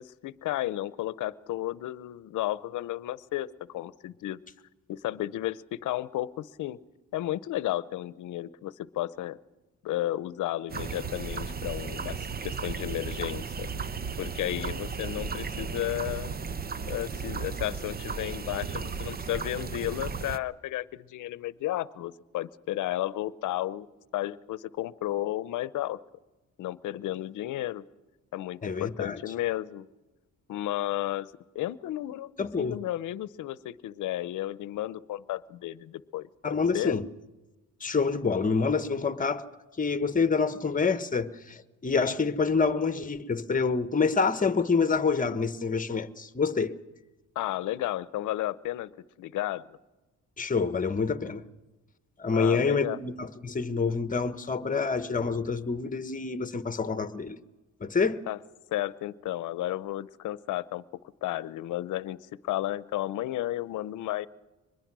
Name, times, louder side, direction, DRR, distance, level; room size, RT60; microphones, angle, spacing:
voice 1, 0.0-4.4 4.9-6.8 7.1-9.4 9.8-13.7 14.2-16.3 16.9-23.9 24.1-26.0 26.6-27.8 28.3-29.9 30.5-37.0 47.4-48.9 49.2-49.8 52.3-53.0 58.3-58.4 58.7-60.8 61.2-64.3, left 14 dB, 80° left, 0.8 m, -33 dB
sound 1, 10.7-20.4, right 5 dB, 30° right, 0.9 m, -35 dB
voice 2, 28.6-29.2 32.4-32.8 36.4-37.0 37.8-39.4 39.8-46.7 50.4-51.4 52.2-57.4 57.8-58.2, left 5 dB, 25° left, 1.3 m, -27 dB
24.0 x 21.0 x 6.2 m
cardioid pair, 90°, 30 cm